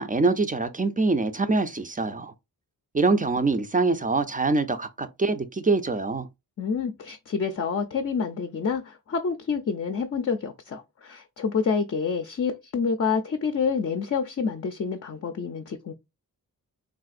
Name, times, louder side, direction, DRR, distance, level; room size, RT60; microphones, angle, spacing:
voice 1, 0.0-2.3 2.9-6.3, right 3 dB, 25° right, 0.4 m, -24 dB
voice 2, 6.6-15.9, left 5 dB, 40° left, 0.5 m, -28 dB
3.5 x 2.5 x 2.4 m
cardioid pair, 50°, 37 cm